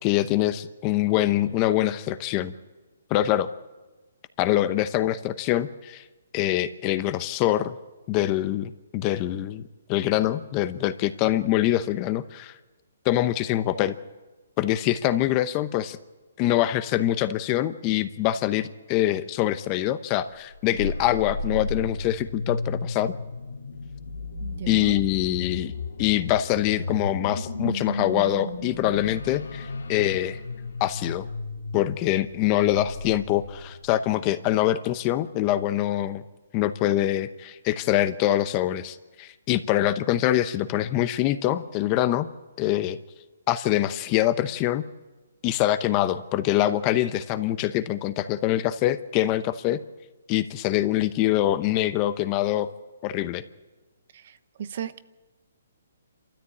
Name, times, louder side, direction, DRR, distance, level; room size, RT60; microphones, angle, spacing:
voice 1, 0.0-2.5 3.1-3.5 4.4-6.0 6.3-7.8 8.1-9.6 9.9-12.5 13.0-14.0 14.6-16.0 16.4-23.2 24.7-25.7 26.0-30.4 30.8-31.3 31.7-36.2 36.5-42.3 42.6-43.0 43.5-44.8 45.4-49.8 50.3-52.7 53.0-53.4, left 13 dB, 25° left, 13 dB, 0.8 m, -24 dB
sound 1, 20.5-34.0, left 2 dB, 85° left, 2.4 m, -34 dB
voice 2, 24.4-25.0 54.1-55.0, right 9 dB, 50° right, 14 dB, 0.9 m, -36 dB
27.0 x 13.5 x 8.5 m, 1.2 s
hypercardioid pair, 160°, 0 cm